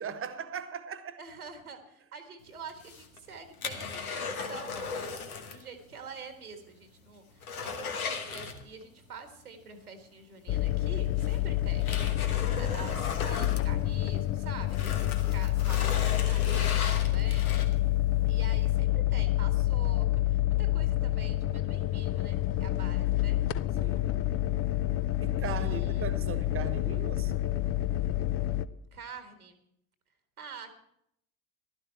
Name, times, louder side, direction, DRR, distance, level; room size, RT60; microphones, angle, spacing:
voice 1, 0.0-1.2 23.8-24.3 25.2-27.3, right 7 dB, 30° right, 1.3 m, -39 dB
voice 2, 1.2-5.2 5.5-17.5 18.3-23.4 25.5-26.1 28.9-29.6 30.4-30.8, right 5 dB, 85° right, 1.7 m, -46 dB
sound 1, 2.7-5.7 5.9-6.0 6.5-6.6 7.0-9.0 10.4-10.5 11.2-14.3 14.6-18.0 18.5-18.6, left 5 dB, 80° left, 1.3 m, -37 dB
sound 2, 10.5-28.7, left 15 dB, 30° left, 0.5 m, -28 dB
15.0 x 12.0 x 4.4 m
figure-of-eight pair, 65°, 43 cm